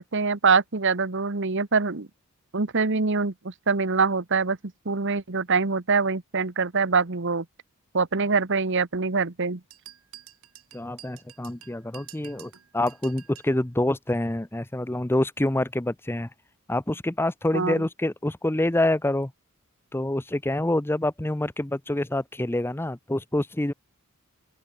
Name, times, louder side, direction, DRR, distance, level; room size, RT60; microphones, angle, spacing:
voice 1, 0.0-2.1 2.5-4.6 4.8-7.4 7.9-9.6 17.5-17.7, right 4 dB, 60° right, 1.3 m, -24 dB
sound 1, 9.7-13.6, right 12 dB, 80° right, 3.5 m, -48 dB
voice 2, 10.7-16.3 16.7-19.3 19.9-23.7, left 1 dB, 10° left, 0.7 m, -26 dB
open air
head